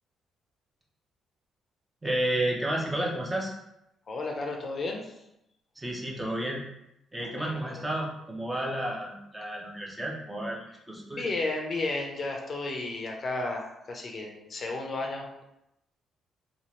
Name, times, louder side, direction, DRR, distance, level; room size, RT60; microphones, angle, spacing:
voice 1, 2.0-3.5 5.8-6.7 7.1-11.3, right 1 dB, 15° right, -2 dB, 0.7 m, -31 dB
voice 2, 4.1-5.1 7.2-7.7 11.1-15.4, left 2 dB, 45° left, 1 dB, 0.5 m, -33 dB
2.7 x 2.4 x 3.0 m, 0.84 s
cardioid pair, 90°, 0 cm